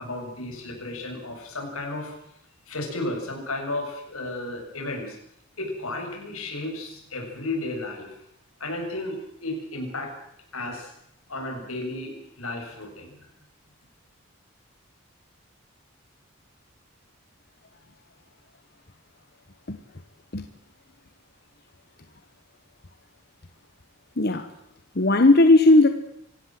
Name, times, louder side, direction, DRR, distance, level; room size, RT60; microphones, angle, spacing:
voice 1, 0.0-2.2 2.7-5.2 5.6-8.2 8.6-10.1 10.5-10.9 11.3-13.1, left 2 dB, 85° left, 2 dB, 7.7 m, -33 dB
voice 2, 24.2-24.5 24.9-25.9, left 2 dB, 50° left, 8 dB, 1.3 m, -17 dB
25.5 x 16.5 x 7.8 m, 0.74 s
head